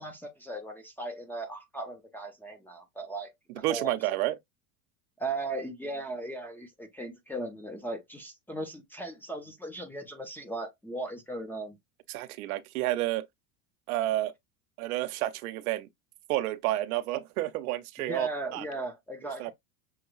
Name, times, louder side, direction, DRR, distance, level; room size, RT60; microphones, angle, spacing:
voice 1, 0.0-3.9 5.2-11.8 18.0-19.5, right 2 dB, 5° left, 0.6 m, -37 dB
voice 2, 3.6-4.4 12.1-13.3 13.9-14.3 14.8-15.9 16.3-18.6 19.4-19.5, right 15 dB, 75° right, 0.7 m, -30 dB
6.2 x 2.3 x 3.0 m
supercardioid pair, 140°, 43 cm